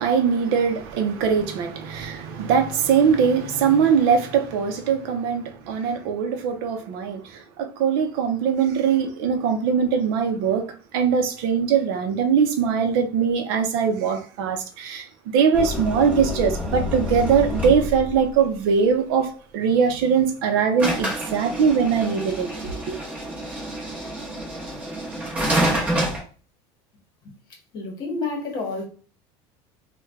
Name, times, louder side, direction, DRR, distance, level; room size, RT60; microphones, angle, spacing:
voice 1, 0.0-10.7 10.9-22.9, right 6 dB, 65° right, 0.6 m, -21 dB
sound 1, 15.5-18.3 20.8-26.2, equal, 10° right, 0.8 m, -28 dB
voice 2, 27.7-28.8, left 3 dB, 35° left, 1.0 m, -29 dB
3.2 x 2.2 x 3.5 m
cardioid pair, 180°, 13 cm